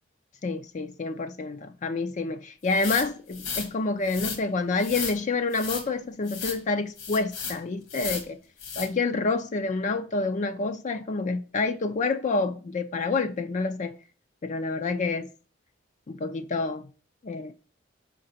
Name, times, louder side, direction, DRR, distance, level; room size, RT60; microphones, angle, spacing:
voice 1, 0.4-8.4 8.8-13.9 14.4-15.3 16.1-16.9 17.2-17.5, left 3 dB, 35° left, 0.4 m, -28 dB
sound 1, 2.7-3.7 4.0-4.4 4.8-5.2 5.5-5.9 6.2-6.6 7.0-7.6 7.9-8.3 8.6-8.9, left 5 dB, 80° left, 1.6 m, -34 dB
5.3 x 3.9 x 5.6 m
head